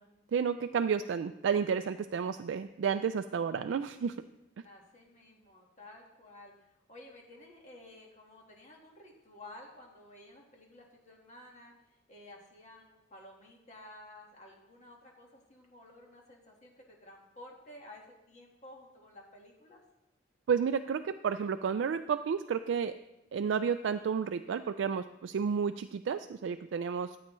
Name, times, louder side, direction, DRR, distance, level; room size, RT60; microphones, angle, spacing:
voice 1, 0.3-4.2 20.5-22.9 23.3-27.2, right 6 dB, 85° right, 9 dB, 0.3 m, -31 dB
voice 2, 4.6-19.8, left 1 dB, 40° left, -1 dB, 1.6 m, -53 dB
13.5 x 8.6 x 3.1 m, 0.93 s
head